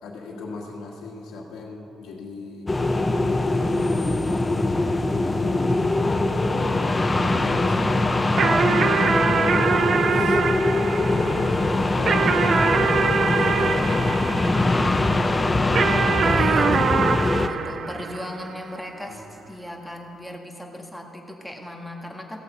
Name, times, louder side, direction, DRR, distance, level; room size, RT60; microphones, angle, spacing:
voice 1, 0.0-4.1 4.9-5.9 6.3-8.0 8.6-9.1 9.3-11.1 11.9-15.0 16.1-16.5 16.7-16.9 19.0-19.2, left 3 dB, 85° left, -3 dB, 1.6 m, -37 dB
sound 1, 2.7-17.5, left 2 dB, 20° left, 0.7 m, -22 dB
sound 2, 8.4-15.1 15.8-18.6, right 6 dB, 55° right, 0.5 m, -24 dB
Engine, 11.1-16.1, left 4 dB, 55° left, 0.9 m, -41 dB
voice 2, 16.2-22.4, equal, ahead, 1 dB, 1.7 m, -37 dB
16.0 x 7.0 x 5.5 m, 2.7 s
cardioid pair, 90°, 0 cm